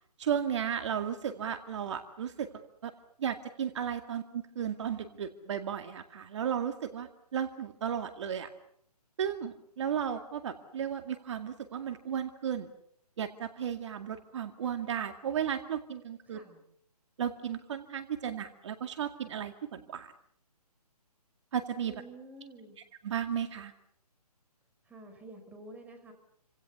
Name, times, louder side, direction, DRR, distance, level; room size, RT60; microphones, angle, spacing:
voice 1, 0.2-2.5 2.8-2.9 3.2-8.5 9.2-12.7 13.2-16.4 17.2-20.1 21.5-21.9 23.0-23.7, right 8 dB, 45° right, 7 dB, 2.2 m, -34 dB
voice 2, 16.3-16.6 21.9-22.8 24.8-26.1, right 2 dB, 10° right, 5 dB, 5.2 m, -49 dB
29.5 x 26.0 x 7.0 m, 0.69 s
hypercardioid pair, 150°, 20 cm